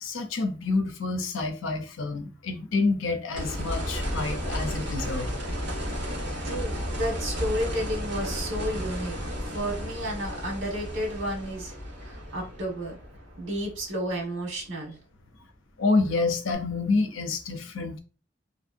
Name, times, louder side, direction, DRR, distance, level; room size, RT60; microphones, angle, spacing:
voice 1, 0.0-5.3 15.8-18.0, left 3 dB, 90° left, 0.6 m, -28 dB
sound 1, 3.3-14.3 16.5-16.6, equal, 60° right, 1.4 m, -33 dB
voice 2, 6.4-11.7 12.0-12.9 13.4-14.9, right 1 dB, 85° right, 1.2 m, -32 dB
3.1 x 2.7 x 2.4 m
head